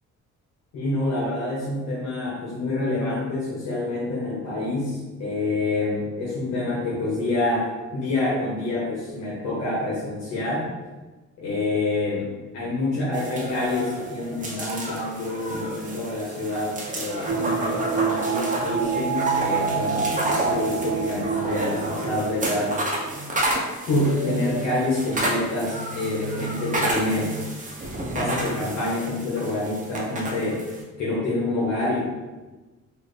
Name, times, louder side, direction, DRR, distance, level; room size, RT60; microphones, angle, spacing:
voice 1, 0.7-10.7 11.4-22.8 23.9-27.3 28.0-30.7 31.0-32.1, left 2 dB, 85° left, -7 dB, 1.2 m, -27 dB
sound 1, 13.1-30.8, right 1 dB, 25° right, 0.9 m, -30 dB
sound 2, 17.3-23.2 23.5-23.6, right 7 dB, 45° right, 0.4 m, -28 dB
4.3 x 2.7 x 3.2 m, 1.2 s
cardioid pair, 90°, 30 cm